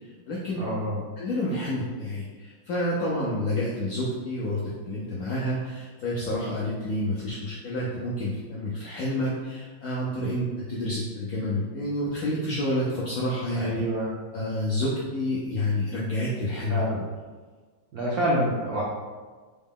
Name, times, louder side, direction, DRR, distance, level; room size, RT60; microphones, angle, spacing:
voice 1, 0.0-0.6 1.2-13.8 14.3-16.8, left 1 dB, 75° left, -6 dB, 0.8 m, -29 dB
voice 2, 0.5-1.0 13.5-14.1 16.7-17.1 17.9-18.8, equal, 70° right, -6 dB, 0.9 m, -27 dB
3.9 x 2.1 x 3.5 m, 1.4 s
omnidirectional pair, 2.2 m